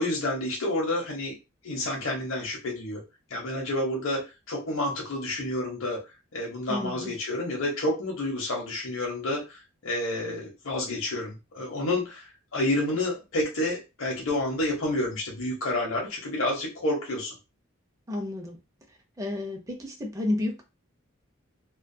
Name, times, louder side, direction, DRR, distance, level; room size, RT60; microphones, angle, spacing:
voice 1, 0.0-1.3 1.6-3.0 3.3-4.2 4.5-6.0 6.3-17.3, left 1 dB, 70° left, -2 dB, 0.7 m, -29 dB
voice 2, 6.7-7.1 18.1-18.6 19.2-20.6, left 2 dB, 15° right, 1 dB, 0.5 m, -31 dB
2.2 x 2.1 x 2.6 m, 0.27 s
head